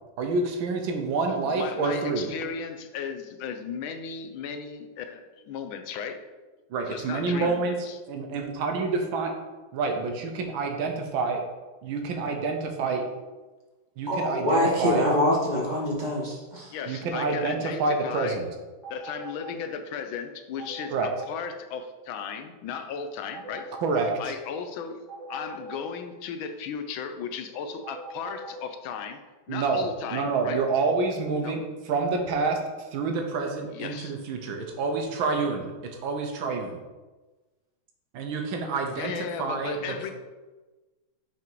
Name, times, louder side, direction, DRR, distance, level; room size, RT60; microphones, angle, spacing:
voice 1, 0.2-2.3 6.7-7.8 8.1-9.3 9.7-11.4 11.8-13.0 14.0-15.1 16.9-18.5 20.9-21.1 23.8-24.3 29.5-32.6 32.9-36.8 38.1-40.1, right 4 dB, 75° right, 4 dB, 1.5 m, -28 dB
voice 2, 1.3-6.2 6.9-8.0 16.7-18.5 18.9-23.8 24.2-29.2 29.5-30.6 31.4-31.6 33.7-34.2 38.9-40.1, left 6 dB, 75° left, 8 dB, 1.4 m, -36 dB
voice 3, 14.1-16.7, left 1 dB, 25° right, -4 dB, 1.4 m, -25 dB
sound 1, 18.8-19.6 20.6-21.3 23.3-24.1 25.1-25.8 27.8-28.6, right 3 dB, 25° left, 2.2 m, -41 dB
5.9 x 5.1 x 4.5 m, 1.2 s
omnidirectional pair, 2.3 m